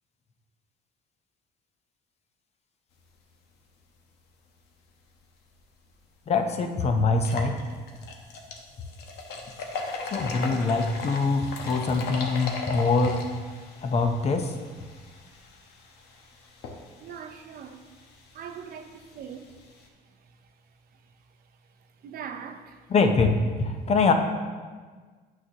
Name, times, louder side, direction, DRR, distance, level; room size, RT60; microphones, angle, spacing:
sound 1, 5.8-5.9 6.4-6.5 7.1-19.9, left 3 dB, 75° left, 0.9 m, -39 dB
voice 1, 6.3-7.6 10.1-13.2 13.8-14.5 22.9-24.1, left 4 dB, 40° left, 0.7 m, -24 dB
voice 2, 17.0-17.8 18.3-19.5 22.0-22.8, right 7 dB, 60° right, 0.6 m, -40 dB
8.7 x 6.4 x 2.8 m
cardioid pair, 110°, 17 cm